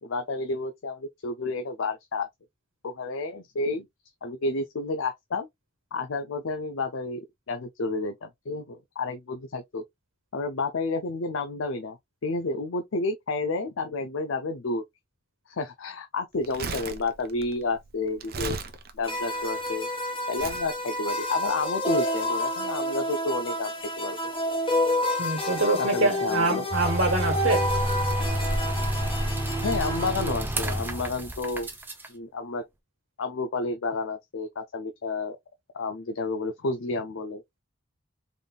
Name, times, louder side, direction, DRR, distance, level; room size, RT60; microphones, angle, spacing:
voice 1, 0.0-2.3 2.8-3.8 4.2-5.5 5.9-9.8 10.3-14.8 15.5-18.6 18.9-19.9 20.3-23.7 24.0-24.2 25.8-26.6 29.0-29.1 29.6-31.7 32.1-32.6 33.2-35.4 35.7-37.4, left 3 dB, 70° left, 0.5 m, -30 dB
Crumpling crinkling, 16.3-19.7 20.4-20.7 21.4-21.6, right 4 dB, 50° right, 0.7 m, -36 dB
sound 1, 19.0-30.3, left 1 dB, 25° left, 1.2 m, -29 dB
voice 2, 25.2-27.6, right 2 dB, 65° right, 1.2 m, -25 dB
sound 2, 26.7-32.1, equal, 10° right, 0.7 m, -29 dB
3.9 x 3.5 x 2.3 m
head